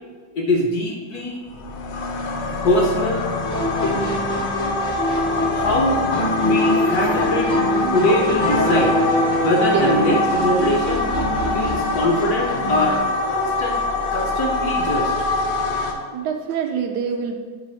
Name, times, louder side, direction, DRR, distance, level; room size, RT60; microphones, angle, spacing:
voice 1, 0.3-1.4 2.6-3.3 5.5-6.0 6.4-11.1 11.5-13.0 13.3-13.8 14.1-15.1, left 1 dB, 65° left, 0 dB, 1.0 m, -22 dB
sound 1, 1.5-15.9, left 2 dB, 80° left, 1.5 m, -24 dB
sound 2, 3.4-13.0, left 1 dB, 50° left, 0.6 m, -24 dB
voice 2, 9.6-10.2 14.2-14.3 16.1-17.3, right 6 dB, 75° right, 4 dB, 1.0 m, -26 dB
7.7 x 3.4 x 4.3 m, 1.5 s
omnidirectional pair, 2.2 m